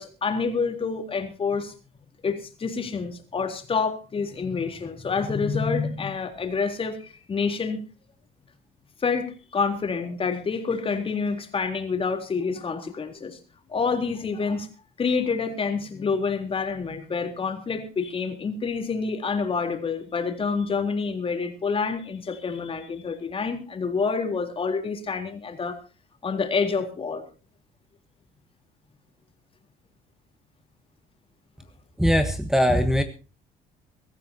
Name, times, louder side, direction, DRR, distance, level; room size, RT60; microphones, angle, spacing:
voice 1, 0.0-1.7 2.2-7.8 9.0-13.4 13.7-14.7 15.0-25.8 26.2-27.2, left 5 dB, 35° left, 5 dB, 3.7 m, -27 dB
voice 2, 32.0-33.0, equal, 5° right, 9 dB, 1.3 m, -20 dB
23.5 x 14.5 x 2.9 m, 0.34 s
cardioid pair, 110°, 17 cm